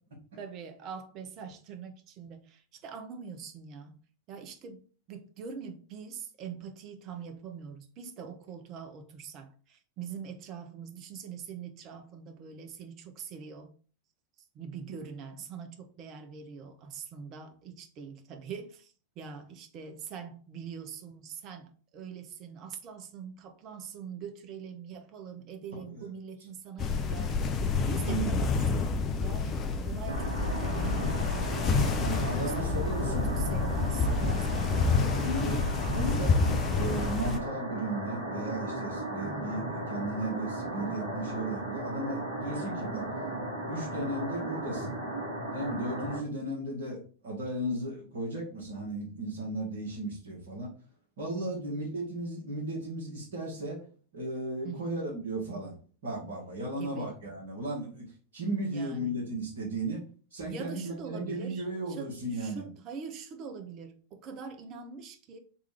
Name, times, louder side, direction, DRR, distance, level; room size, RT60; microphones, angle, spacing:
voice 1, 0.4-4.0 4.3-4.8 5.1-13.7 14.5-31.6 32.2-35.4 39.1-39.8 51.2-51.8 54.6-55.0 56.8-57.2 58.7-59.1 60.4-65.4, right 6 dB, 35° right, 0.6 m, -43 dB
voice 2, 25.7-26.1 28.0-28.3 32.0-33.3 35.2-35.6 35.9-36.4 36.8-43.1 43.7-44.9 45.5-50.7 51.2-53.8 54.1-55.8 56.0-58.1 58.3-60.0 60.3-62.7, right 1 dB, 60° right, 1.5 m, -35 dB
sound 1, 26.8-37.4, left 4 dB, 30° left, 0.5 m, -28 dB
sound 2, 30.1-46.2, right 1 dB, 75° right, 1.9 m, -36 dB
3.5 x 3.2 x 3.3 m
figure-of-eight pair, 90°, 0 cm